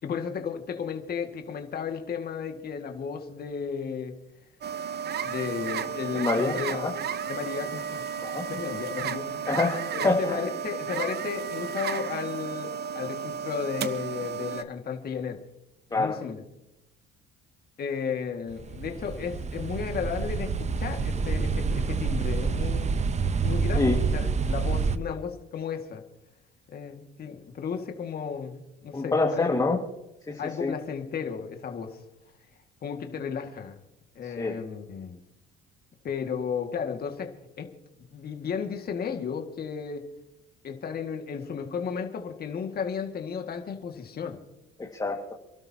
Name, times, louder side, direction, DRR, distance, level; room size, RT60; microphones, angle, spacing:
voice 1, 0.0-4.2 5.2-6.9 7.2-8.0 8.5-9.5 9.9-15.4 15.9-16.4 17.8-22.9 23.4-23.8 24.1-26.0 26.7-29.8 30.4-32.0 32.8-33.8 34.2-35.2 36.0-37.7 38.1-40.1 40.6-44.4, left 6 dB, 45° left, 4 dB, 2.1 m, -34 dB
sound 1, 4.6-14.6, right 7 dB, 50° right, 1.1 m, -33 dB
voice 2, 6.1-6.9 8.2-8.4 9.5-10.4 15.9-16.2 23.8-24.0 28.9-29.8 30.3-30.7 34.4-34.6 44.8-45.3, left 3 dB, 20° left, 1 dB, 2.0 m, -26 dB
sound 2, 18.5-25.0, right 5 dB, 30° right, 0.9 m, -27 dB
28.0 x 12.5 x 2.9 m, 0.90 s
cardioid pair, 95°, 21 cm